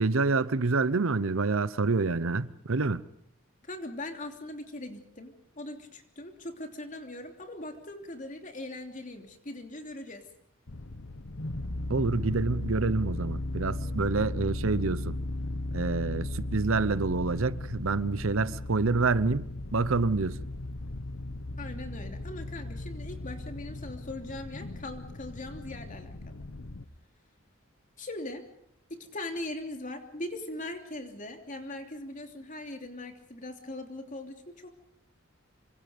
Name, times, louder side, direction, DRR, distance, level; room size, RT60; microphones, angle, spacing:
voice 1, 0.0-3.0 11.9-15.2 15.7-19.5 19.7-20.4, right 3 dB, 80° right, 0.9 m, -27 dB
voice 2, 3.6-10.2 21.6-26.4 28.0-28.5 28.9-34.8, left 1 dB, 40° left, 3.1 m, -40 dB
sound 1, 10.7-26.8, left 1 dB, 70° left, 1.2 m, -36 dB
27.0 x 24.5 x 5.2 m
head